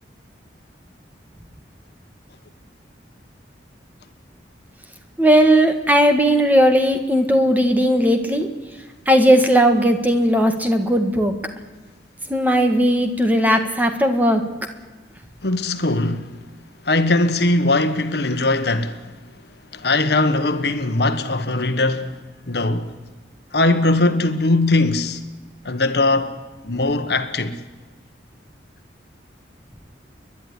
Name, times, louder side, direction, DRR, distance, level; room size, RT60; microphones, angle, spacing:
voice 1, 5.2-8.5 9.1-11.3 12.3-14.4, equal, 10° right, 1.6 m, -17 dB
voice 2, 15.4-16.3 16.8-19.0 19.7-22.1 22.5-22.9 23.5-25.2 25.6-26.3 26.6-27.6, left 2 dB, 60° left, 1.3 m, -20 dB
29.0 x 11.0 x 9.9 m
head